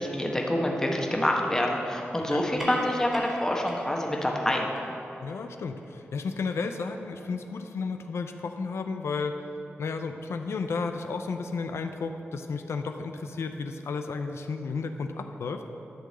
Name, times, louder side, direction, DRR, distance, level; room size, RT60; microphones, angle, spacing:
voice 1, 0.0-4.6, left 1 dB, 15° left, 0 dB, 1.1 m, -27 dB
sound 1, 2.3-7.2, equal, 5° right, 1.9 m, -43 dB
voice 2, 5.2-9.4 9.8-15.6, left 4 dB, 85° left, 6 dB, 0.4 m, -33 dB
11.0 x 3.8 x 7.6 m, 2.9 s
wide cardioid pair, 95°, 4 cm